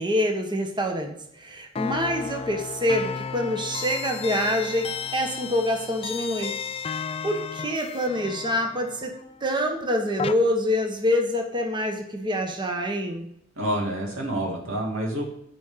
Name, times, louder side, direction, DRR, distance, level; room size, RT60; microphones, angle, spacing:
voice 1, 0.0-6.5 7.2-13.3, equal, 25° right, 3 dB, 1.2 m, -26 dB
sound 1, 1.8-10.3, left 6 dB, 30° left, 0.4 m, -34 dB
voice 2, 13.6-15.2, right 1 dB, 90° right, 0 dB, 2.5 m, -28 dB
8.3 x 5.0 x 5.7 m, 0.73 s
head